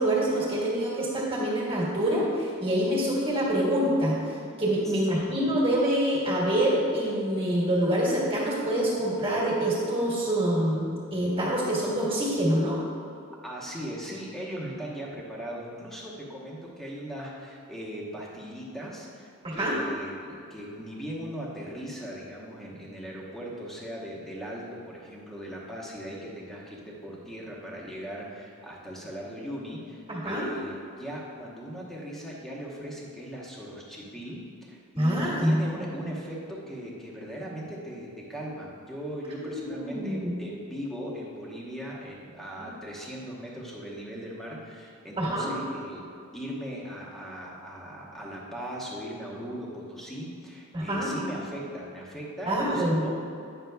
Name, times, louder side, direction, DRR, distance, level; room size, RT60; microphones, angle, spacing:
voice 1, 0.0-12.8 19.4-19.8 30.1-30.5 34.9-35.6 39.5-40.3 42.6-42.7 45.2-45.5 50.7-51.1 52.5-53.0, right 1 dB, 25° right, -6 dB, 1.5 m, -26 dB
voice 2, 4.8-5.3 13.4-46.0 46.3-53.1, equal, ahead, -5 dB, 1.0 m, -39 dB
9.1 x 6.0 x 2.3 m, 2.6 s
head